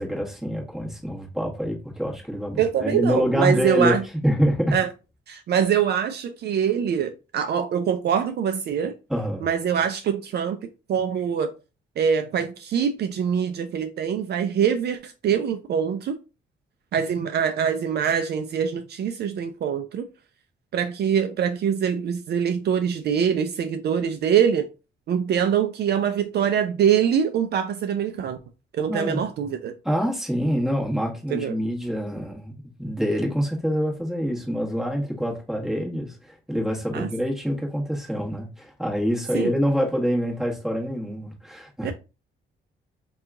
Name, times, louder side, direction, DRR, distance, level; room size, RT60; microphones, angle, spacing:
voice 1, 0.0-3.9 4.2-4.8 9.1-9.4 28.9-29.2 29.8-32.5 32.8-41.9, equal, ahead, 1.3 m, -26 dB
voice 2, 2.6-4.0 4.7-4.9 5.3-9.0 9.4-10.6 10.9-11.5 12.0-16.2 16.9-20.1 20.7-24.7 25.1-28.4 28.7-29.7 31.3-31.6 36.9-37.1 39.3-39.5 41.8-41.9, right 8 dB, 55° right, 0.4 m, -24 dB
2.8 x 2.3 x 3.6 m
cardioid pair, 90°, 20 cm